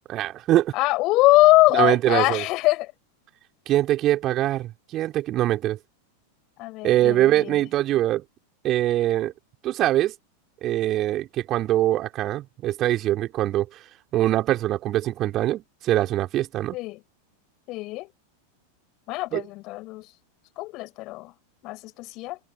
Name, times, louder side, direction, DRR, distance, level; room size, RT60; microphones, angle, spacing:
voice 1, 0.1-0.7 1.7-2.4 3.7-5.8 6.8-8.2 8.6-9.3 9.6-10.1 10.6-13.8 14.1-16.8 19.3-19.4, right 14 dB, 35° right, 3.3 m, -23 dB
voice 2, 0.7-2.9 6.6-7.7 16.7-17.0 17.7-18.1 19.1-20.1 20.6-21.3 21.6-22.4, left 20 dB, 40° left, 6.5 m, -22 dB
figure-of-eight pair, 90°, 0 cm